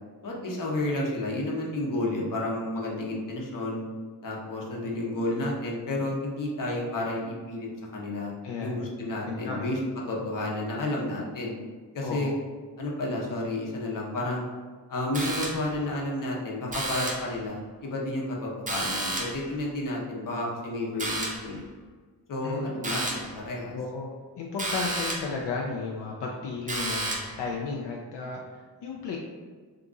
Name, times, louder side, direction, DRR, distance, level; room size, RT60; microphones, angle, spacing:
voice 1, 0.2-3.8 4.2-8.3 8.6-9.8 10.1-11.6 11.9-12.3 12.8-14.4 14.9-21.6 22.3-23.8, left 1 dB, 50° left, -2 dB, 0.8 m, -31 dB
voice 2, 8.4-8.8 9.3-9.7 12.0-12.4 22.4-22.7 23.7-24.1 24.4-29.2, left 4 dB, 75° left, -1 dB, 0.5 m, -34 dB
sound 1, 15.1-15.8 16.7-17.4 18.7-19.5 21.0-21.5 22.8-23.4 24.6-25.4 26.7-27.4, right 2 dB, 20° right, 0.5 m, -31 dB
2.8 x 2.5 x 3.6 m, 1.5 s
wide cardioid pair, 130°, 42 cm